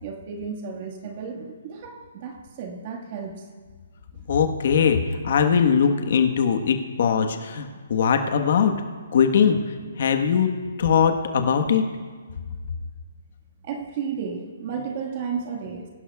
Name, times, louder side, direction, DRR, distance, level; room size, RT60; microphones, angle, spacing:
voice 1, 0.0-3.5 4.2-4.3 13.6-15.9, right 6 dB, 40° right, 1 dB, 1.7 m, -33 dB
voice 2, 4.3-5.0 5.2-8.7 9.1-9.6 10.0-10.5 10.8-11.8, left 7 dB, 55° left, 6 dB, 1.3 m, -20 dB
23.0 x 11.5 x 2.4 m, 1.5 s
hypercardioid pair, 155°, 0 cm